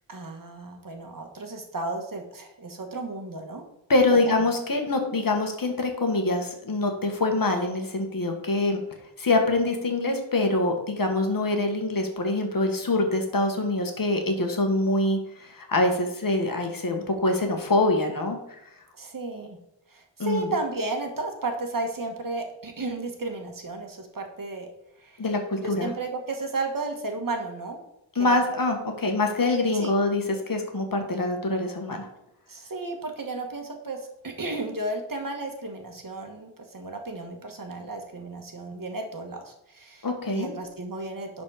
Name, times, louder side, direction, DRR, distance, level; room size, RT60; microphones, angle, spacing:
voice 1, 0.1-3.6 4.1-4.3 19.0-19.6 19.9-24.7 25.0-25.2 25.6-27.8 28.2-28.4 29.7-29.9 32.5-41.4, right 2 dB, 50° right, 4 dB, 1.6 m, -33 dB
voice 2, 3.9-8.8 9.2-18.4 20.2-20.5 25.2-25.9 28.2-32.1 40.0-40.5, left 2 dB, 50° left, 3 dB, 1.7 m, -25 dB
10.5 x 4.3 x 5.0 m, 0.84 s
wide cardioid pair, 85°, 42 cm